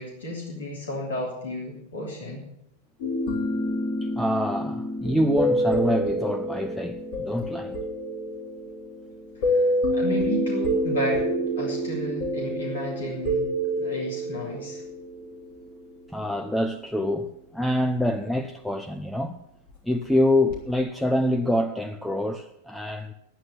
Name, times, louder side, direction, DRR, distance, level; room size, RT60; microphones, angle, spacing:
voice 1, 0.0-2.4 9.4-11.3 11.5-13.5 13.8-14.8, left 1 dB, 65° left, 3.3 m, -32 dB
sound 1, 3.0-16.2 20.5-20.7, equal, 45° left, 3.4 m, -28 dB
voice 2, 4.0-7.8 16.1-19.4 19.8-23.1, left 1 dB, ahead, 0.7 m, -26 dB
10.5 x 9.6 x 8.3 m
figure-of-eight pair, 90°, 0 cm